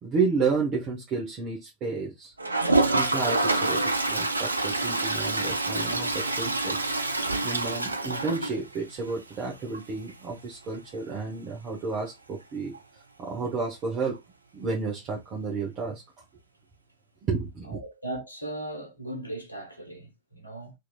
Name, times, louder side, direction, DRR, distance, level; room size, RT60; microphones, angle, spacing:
voice 1, 0.0-2.3 2.9-6.9 7.4-14.2 14.5-16.0 17.3-17.8, right 4 dB, 35° right, 0.9 m, -31 dB
Toilet flush, 2.4-9.1 9.4-9.5 9.7-9.8 10.1-10.2 12.7-12.8 14.1-14.2, right 2 dB, 80° right, 0.3 m, -27 dB
voice 2, 17.7-20.7, right 1 dB, 80° left, 0.9 m, -38 dB
2.9 x 2.7 x 2.2 m
figure-of-eight pair, 90°, 0 cm